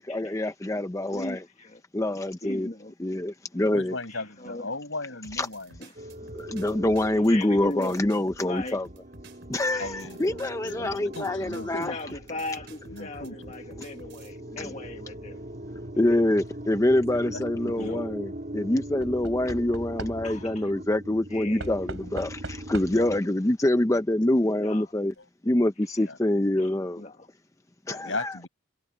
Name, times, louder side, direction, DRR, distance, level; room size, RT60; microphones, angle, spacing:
voice 1, 0.0-1.4 1.9-2.7 3.0-3.9 5.3-5.5 6.3-8.9 9.5-11.9 14.6-14.7 15.9-25.1 25.4-27.0 27.9-28.4, left 1 dB, 15° left, 0.6 m, -25 dB
voice 2, 1.1-1.8 2.4-2.9 4.1-4.7 5.8-5.9 7.2-8.0 8.4-8.8 9.7-10.0 11.7-15.4 17.8-18.0 20.2-20.7 21.3-21.8 24.6-24.9 26.6-27.3 28.0-28.1, left 2 dB, 35° left, 1.5 m, -38 dB
voice 3, 3.7-5.8 9.8-12.0 12.9-13.4 17.1-18.0 22.9-23.1 25.2-25.3 26.0-26.2 27.9-28.5, left 3 dB, 70° left, 7.6 m, -37 dB
sound 1, 5.2-14.4, right 3 dB, 60° right, 4.1 m, -51 dB
sound 2, 6.0-23.2, right 1 dB, 40° right, 3.7 m, -41 dB
Knock / Wood, 16.8-17.3 19.0-20.5 21.6-23.2 24.2-24.3 24.5-24.6, right 2 dB, 90° right, 3.3 m, -40 dB
head